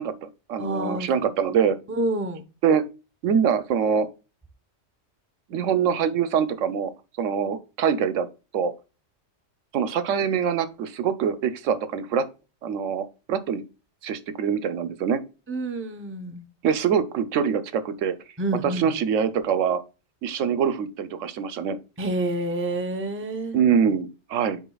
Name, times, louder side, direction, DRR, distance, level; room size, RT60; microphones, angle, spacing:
voice 1, 0.0-1.8 2.6-2.8 3.2-4.1 5.5-6.9 7.2-8.3 8.5-8.7 9.7-12.2 12.6-13.6 14.0-15.2 16.6-18.1 18.8-19.8 20.2-21.8 23.5-24.6, right 7 dB, 80° right, 1.0 m, -24 dB
voice 2, 0.6-1.1 1.9-2.4 15.5-16.5 18.4-18.9 22.0-23.6, right 2 dB, 15° right, 0.6 m, -28 dB
10.0 x 4.5 x 2.3 m
omnidirectional pair, 1.3 m